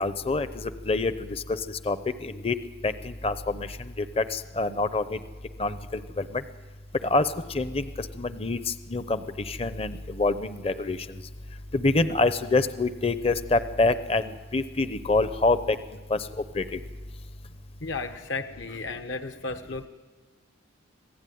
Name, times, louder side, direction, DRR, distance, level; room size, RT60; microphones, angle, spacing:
voice 1, 0.0-2.5 2.8-5.2 5.6-6.4 7.0-11.2 11.7-15.8 16.1-16.3 16.5-16.8, left 3 dB, 30° left, 12 dB, 0.7 m, -26 dB
voice 2, 17.8-19.9, left 3 dB, 65° left, 7 dB, 1.1 m, -34 dB
26.5 x 16.5 x 9.3 m, 1.3 s
head